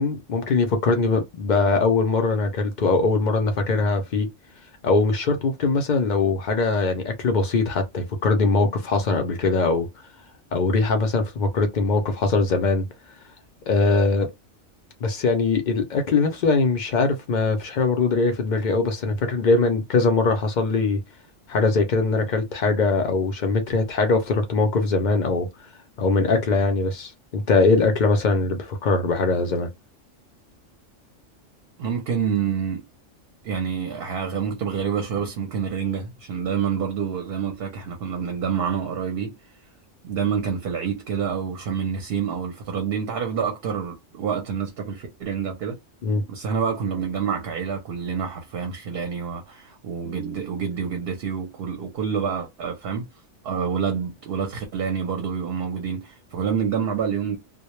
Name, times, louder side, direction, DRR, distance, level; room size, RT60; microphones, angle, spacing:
voice 1, 0.0-4.3 4.8-9.9 10.5-12.9 13.7-14.3 15.0-21.0 21.5-25.5 26.0-29.7 46.0-46.2, left 3 dB, 65° left, 0.4 m, -21 dB
voice 2, 31.8-32.9 33.4-39.4 40.0-45.8 46.3-53.1 53.4-57.4, right 7 dB, 60° right, 0.7 m, -27 dB
2.1 x 2.0 x 2.9 m
omnidirectional pair, 1.3 m